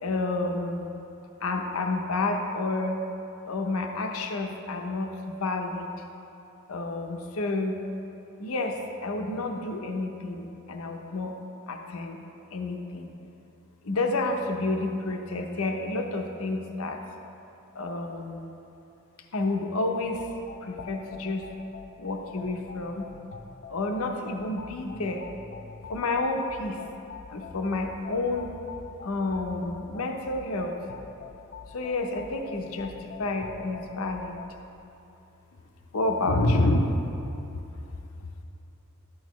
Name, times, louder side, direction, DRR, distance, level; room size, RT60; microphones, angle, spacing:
voice 1, 0.0-0.9 1.4-3.0 3.4-6.0 6.7-7.8 8.4-11.4 11.7-12.2 12.5-13.1 13.8-17.0 17.7-18.5 19.3-20.3 20.6-21.5 22.0-23.1 23.7-25.3 25.9-26.8 27.3-28.6 29.0-30.8 31.7-34.4 35.9-36.9, left 2 dB, 85° left, 3 dB, 0.7 m, -29 dB
sound 1, 20.0-34.5, left 5 dB, 50° left, 0.5 m, -45 dB
12.5 x 8.7 x 3.1 m, 2.8 s
head